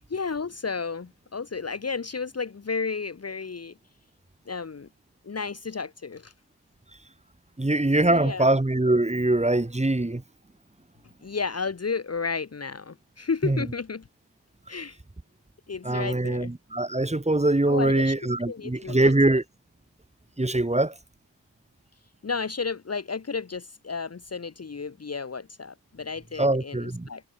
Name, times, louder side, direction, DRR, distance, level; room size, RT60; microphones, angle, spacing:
voice 1, 0.1-3.7 4.5-4.9 5.2-6.3 8.1-8.5 11.2-14.1 14.7-15.0 15.7-16.5 17.7-18.1 18.5-19.1 22.2-27.2, left 5 dB, 35° left, 2.0 m, -32 dB
voice 2, 7.6-10.2 13.4-13.7 15.8-19.4 20.4-20.9 26.4-27.1, right 2 dB, 15° right, 5.3 m, -23 dB
cardioid pair, 75°, 45 cm